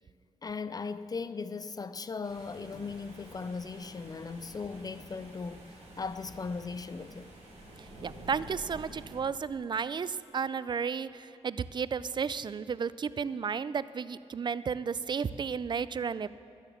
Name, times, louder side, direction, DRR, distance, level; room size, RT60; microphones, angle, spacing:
voice 1, 0.4-5.7 6.0-7.3, left 4 dB, 35° left, 0.4 m, -38 dB
sound 1, 2.2-9.2, right 1 dB, 75° right, 2.8 m, -49 dB
voice 2, 8.0-16.3, right 6 dB, 40° right, 0.4 m, -33 dB
12.0 x 8.0 x 7.0 m
cardioid pair, 85°, 11 cm